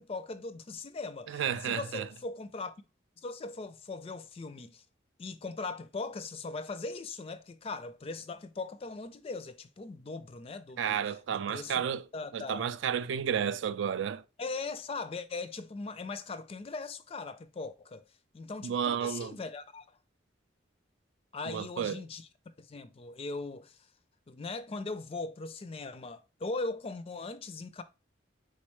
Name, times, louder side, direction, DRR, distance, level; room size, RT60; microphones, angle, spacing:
voice 1, 0.0-2.8 3.2-4.8 5.2-11.0 11.3-11.8 12.1-12.7 14.4-18.0 18.3-19.9 21.3-22.3 22.6-23.8 24.3-27.8, left 3 dB, 30° left, 0.4 m, -39 dB
voice 2, 1.3-2.1 10.8-12.0 12.3-14.2 18.6-19.4 21.5-22.0, right 8 dB, 70° right, 0.3 m, -32 dB
4.2 x 3.9 x 3.1 m
head